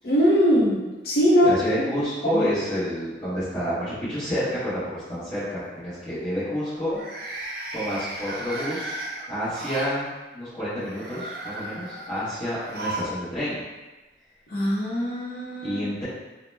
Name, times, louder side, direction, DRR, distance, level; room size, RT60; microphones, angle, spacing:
voice 1, 0.0-1.6 2.3-2.4 14.5-15.8, equal, 55° left, -7 dB, 0.6 m, -21 dB
voice 2, 1.4-7.4 7.7-9.0 9.3-13.6 15.6-16.0, equal, 25° left, -16 dB, 1.0 m, -29 dB
sound 1, 4.4-4.7 6.8-9.9 10.8-13.2 13.5-13.6 14.7-14.8, right 1 dB, 55° right, 0.5 m, -35 dB
2.8 x 2.0 x 3.2 m, 1.1 s
head